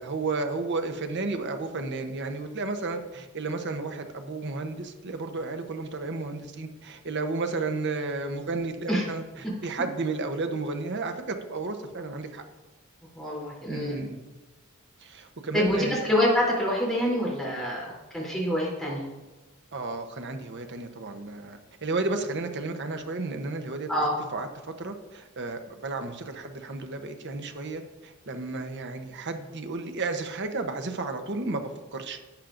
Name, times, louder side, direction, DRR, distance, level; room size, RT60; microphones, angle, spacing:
voice 1, 0.0-12.4 13.7-14.2 15.0-16.1 19.7-32.2, right 3 dB, 55° right, 6 dB, 0.9 m, -32 dB
voice 2, 13.1-14.0 15.5-19.1 23.9-24.2, left 1 dB, ahead, -6 dB, 3.3 m, -26 dB
11.5 x 8.4 x 2.6 m, 1.2 s
head